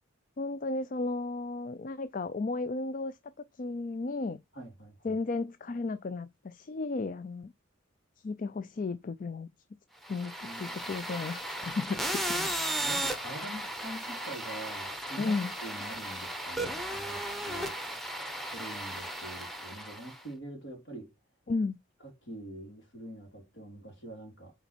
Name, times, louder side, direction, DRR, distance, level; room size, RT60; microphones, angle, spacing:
voice 1, 0.4-3.2 3.5-4.4 5.0-7.5 8.2-9.5 10.1-10.3 10.6-12.3 15.1-15.5 17.6-17.7 21.5-21.8, left 3 dB, 40° left, 0.4 m, -34 dB
voice 2, 4.5-5.2 10.4-10.9 12.3-12.5 12.8-17.7 18.5-21.1 22.2-24.5, right 1 dB, 55° left, 3.3 m, -45 dB
sound 1, 10.0-20.2, right 1 dB, ahead, 1.0 m, -36 dB
8.3 x 4.0 x 4.4 m
head